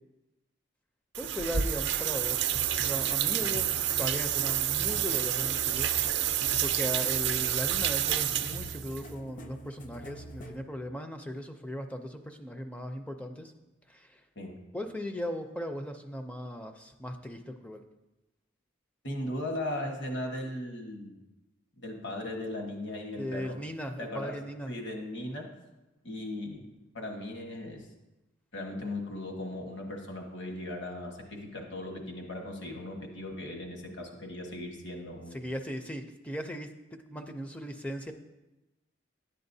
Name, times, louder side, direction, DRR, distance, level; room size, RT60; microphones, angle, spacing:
sound 1, 1.1-9.0, right 10 dB, 60° right, 0.5 m, -29 dB
voice 1, 1.2-2.6 2.8-6.3 6.6-13.5 13.9-14.2 14.7-17.8 23.2-24.7 35.3-38.1, equal, 5° left, 5 dB, 0.4 m, -38 dB
sound 2, 2.5-10.6, right 1 dB, 40° left, 0.7 m, -44 dB
voice 2, 19.0-21.2 21.8-23.5 24.0-24.3 24.7-25.5 26.0-27.9 28.5-35.5, left 1 dB, 65° left, 2 dB, 1.4 m, -38 dB
11.0 x 8.7 x 2.7 m, 1.0 s
head